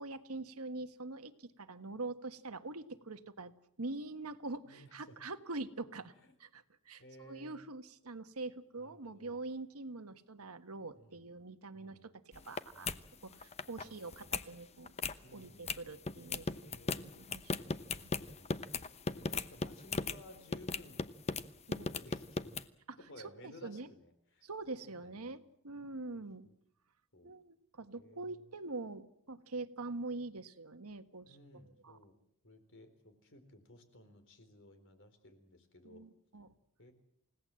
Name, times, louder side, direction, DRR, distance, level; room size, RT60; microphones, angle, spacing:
voice 1, 0.0-3.5 3.8-6.1 6.4-13.0 13.2-14.9 15.3-16.5 16.9-17.7 18.0-18.1 21.7-21.9 22.9-23.0 23.4-23.9 24.4-26.5 27.2-31.4 31.8-32.0 35.8-36.5, right 3 dB, 85° right, 9 dB, 1.5 m, -44 dB
voice 2, 4.6-5.2 6.1-6.4 7.0-7.6 8.8-9.4 11.0-11.4 11.7-12.1 12.7-13.0 13.8-14.6 15.2-16.0 16.5-17.3 17.9-18.8 19.1-21.1 21.8-22.6 23.0-25.4 26.1-26.5 27.1-27.3 28.0-28.5 31.3-32.2 32.4-36.1 36.8-36.9, left 1 dB, 60° left, 8 dB, 4.2 m, -58 dB
sound 1, 12.3-12.6 12.9-13.0 13.3-13.8 14.1-14.4 14.9-15.2 15.7-15.8 16.1-20.2 20.5-21.4 21.7-22.6, left 4 dB, 30° left, 0.9 m, -36 dB
29.0 x 17.5 x 7.7 m, 0.73 s
head